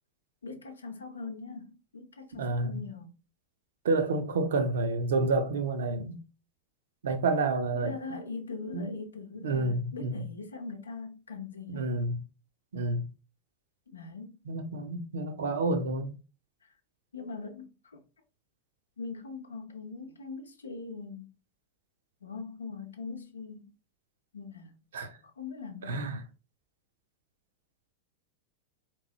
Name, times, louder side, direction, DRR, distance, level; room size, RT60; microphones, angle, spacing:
voice 1, 0.4-3.2 7.7-11.9 13.9-14.4 17.1-18.0 19.0-21.3 22.2-23.7 24.3-24.8 25.4-26.1, left 4 dB, 75° left, 0.7 m, -41 dB
voice 2, 2.3-2.8 3.8-6.2 7.0-7.9 8.7-8.9 9.4-10.2 11.7-12.2 12.7-13.1 14.5-16.2 24.9-25.2 25.8-26.2, right 3 dB, 60° right, 0.6 m, -29 dB
3.8 x 3.0 x 2.8 m
figure-of-eight pair, 90°, 0 cm